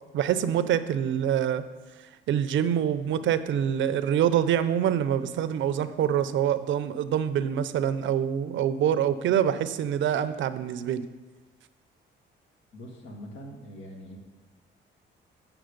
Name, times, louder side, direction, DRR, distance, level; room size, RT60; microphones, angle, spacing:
voice 1, 0.1-1.6 2.3-11.0, right 9 dB, 75° right, 12 dB, 0.6 m, -25 dB
voice 2, 12.7-14.2, equal, 70° left, 1 dB, 1.8 m, -43 dB
7.9 x 6.0 x 5.1 m, 1.3 s
cardioid pair, 90°, 20 cm